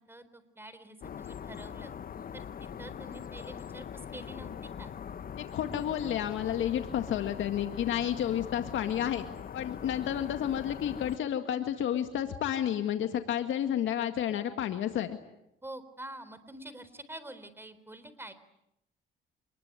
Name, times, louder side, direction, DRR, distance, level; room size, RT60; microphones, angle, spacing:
voice 1, 0.1-1.9 2.3-4.9 15.6-18.3, right 1 dB, 10° right, 13 dB, 3.9 m, -47 dB
sound 1, 1.0-11.2, left 8 dB, 45° left, 1.0 m, -42 dB
voice 2, 5.4-9.3 9.5-15.2, left 10 dB, 80° left, 7 dB, 1.9 m, -31 dB
27.5 x 21.0 x 9.6 m, 0.84 s
cardioid pair, 90°, 20 cm